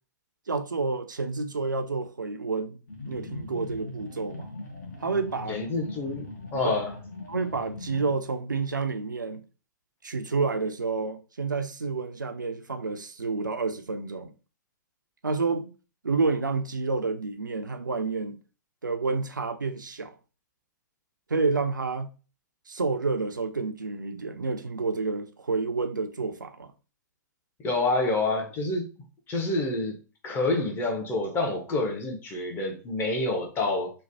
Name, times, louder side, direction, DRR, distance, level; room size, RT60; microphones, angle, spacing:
voice 1, 0.5-2.8 3.0-4.5 5.0-5.6 6.6-6.7 7.3-9.4 10.0-14.3 15.2-15.7 16.0-18.4 18.8-20.1 21.3-22.1 22.7-26.7, right 4 dB, 80° right, 0.4 m, -29 dB
sound 1, 2.9-8.2, left 2 dB, 60° left, 0.9 m, -40 dB
voice 2, 5.5-7.0 27.6-28.9 29.3-30.0 30.2-33.9, left 2 dB, 20° left, 0.7 m, -28 dB
3.1 x 2.1 x 2.6 m
figure-of-eight pair, 110°, 10 cm